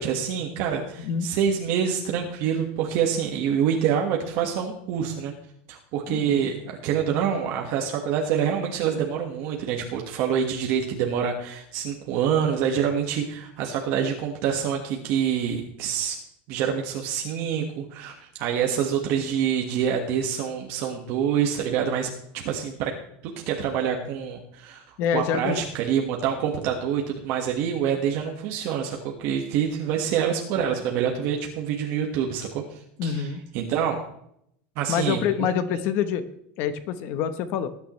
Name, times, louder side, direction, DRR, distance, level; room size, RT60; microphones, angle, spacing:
voice 1, 0.0-5.3 5.7-16.1 16.5-22.1 22.4-22.9 23.2-24.8 25.1-32.6 33.0-34.0 34.7-35.8, right 8 dB, 45° right, 1 dB, 1.5 m, -26 dB
voice 2, 6.1-6.4 25.0-25.6 33.0-33.4 34.9-36.2 36.6-37.7, left 8 dB, 45° left, 12 dB, 0.9 m, -26 dB
19.5 x 9.5 x 3.1 m, 0.71 s
supercardioid pair, 170°, 5 cm